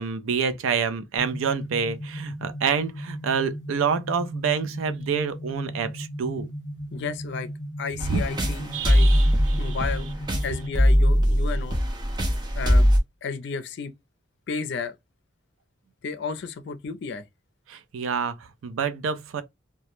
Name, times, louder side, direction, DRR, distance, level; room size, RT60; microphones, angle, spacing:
voice 1, 0.0-6.5 8.1-8.2 8.7-9.8 17.7-19.4, right 6 dB, 80° right, 0.4 m, -27 dB
sound 1, 1.2-11.2, equal, 20° left, 0.7 m, -36 dB
voice 2, 6.9-7.5 7.8-9.1 9.6-10.1 10.4-11.8 12.6-12.9 13.2-13.9 14.5-15.0 16.0-17.2, left 5 dB, 55° left, 0.4 m, -32 dB
sound 2, 8.0-13.0, equal, 20° right, 0.4 m, -21 dB
2.2 x 2.0 x 2.9 m
head